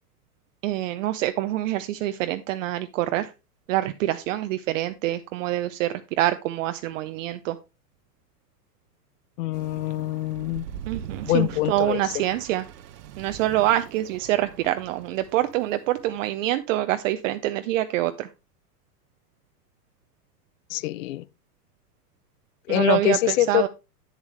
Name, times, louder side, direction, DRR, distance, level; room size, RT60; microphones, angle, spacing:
voice 1, 0.6-3.3 3.7-7.6 10.9-12.6 13.2-18.3 22.7-23.7, right 15 dB, 55° right, 0.5 m, -26 dB
voice 2, 9.4-10.7 11.2-12.2 20.7-21.2 22.7-23.6, left 17 dB, 55° left, 0.5 m, -24 dB
sound 1, 9.5-16.4, right 9 dB, 85° right, 0.9 m, -42 dB
8.1 x 7.3 x 3.2 m
hypercardioid pair, 135°, 47 cm